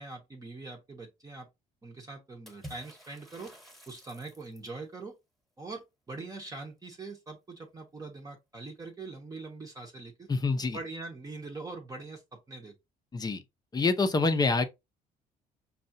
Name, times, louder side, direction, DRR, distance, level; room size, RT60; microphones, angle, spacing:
voice 1, 0.0-1.5 1.8-3.5 3.9-5.1 5.6-10.3 10.7-12.7, right 3 dB, 20° right, 0.9 m, -43 dB
Water / Splash splatter, 2.5-4.8, equal, ahead, 1.2 m, -50 dB
voice 2, 10.3-10.8 13.1-13.4 13.7-14.7, left 3 dB, 25° left, 0.7 m, -26 dB
5.4 x 2.4 x 2.7 m
cardioid pair, 110°, 17 cm